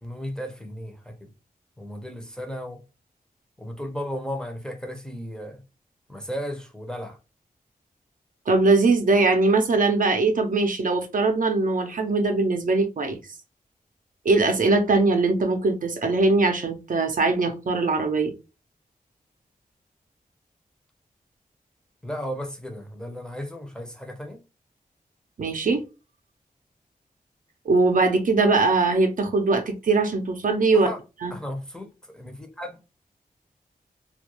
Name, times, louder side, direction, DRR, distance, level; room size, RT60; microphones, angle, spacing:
voice 1, 0.0-1.3 1.8-2.8 3.6-5.6 6.1-7.2 22.0-24.4 30.7-31.0 31.3-32.8, equal, 5° left, 0.6 m, -35 dB
voice 2, 8.5-13.2 14.2-18.3 25.4-25.8 27.7-30.9 31.2-31.3, right 3 dB, 60° right, 0.5 m, -21 dB
2.3 x 2.2 x 2.9 m
wide cardioid pair, 80°, 15 cm